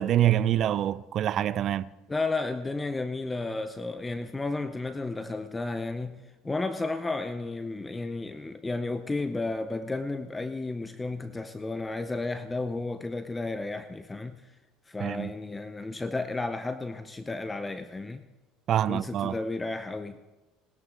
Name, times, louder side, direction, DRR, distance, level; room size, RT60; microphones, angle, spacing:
voice 1, 0.0-1.9 15.0-15.3 18.7-19.4, right 11 dB, 50° right, 0.5 m, -26 dB
voice 2, 2.1-14.5 14.9-18.2 18.9-20.3, left 3 dB, 15° left, 0.7 m, -33 dB
20.0 x 12.5 x 3.8 m
supercardioid pair, 105°, 0 cm